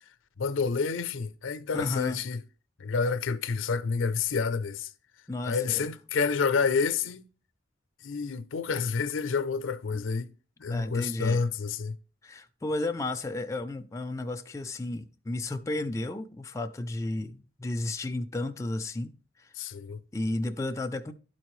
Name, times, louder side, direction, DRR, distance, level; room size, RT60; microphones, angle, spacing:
voice 1, 0.4-2.4 2.8-4.9 5.4-7.2 8.0-10.3 10.6-12.0 19.6-20.0, left 5 dB, 80° left, 0.5 m, -29 dB
voice 2, 1.7-2.2 5.3-5.9 9.9-10.0 10.7-11.4 12.2-19.5 20.1-21.1, left 2 dB, 15° left, 0.3 m, -33 dB
12.0 x 4.4 x 3.1 m
head